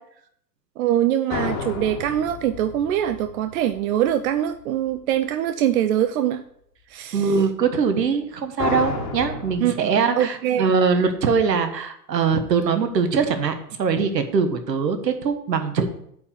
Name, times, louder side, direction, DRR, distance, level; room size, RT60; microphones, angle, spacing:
voice 1, 0.8-6.4 6.9-7.4 9.6-10.6, right 11 dB, 60° right, 9 dB, 0.7 m, -23 dB
sound 1, 1.3-4.3 8.6-9.6, left 5 dB, 35° left, 2.1 m, -31 dB
voice 2, 7.1-15.9, right 5 dB, 80° right, 8 dB, 1.5 m, -22 dB
8.4 x 4.8 x 6.8 m, 0.70 s
hypercardioid pair, 105°, 49 cm